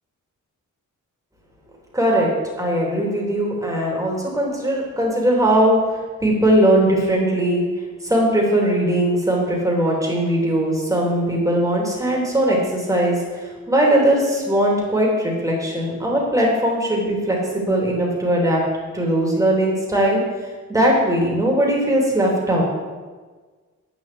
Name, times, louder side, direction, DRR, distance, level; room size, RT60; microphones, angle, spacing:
voice 1, 1.9-2.3 2.6-5.8 6.2-7.7 8.0-18.6 18.9-20.2 20.7-22.6, right 1 dB, 10° right, -3 dB, 3.3 m, -19 dB
9.3 x 7.3 x 7.9 m, 1.4 s
wide cardioid pair, 120°, 31 cm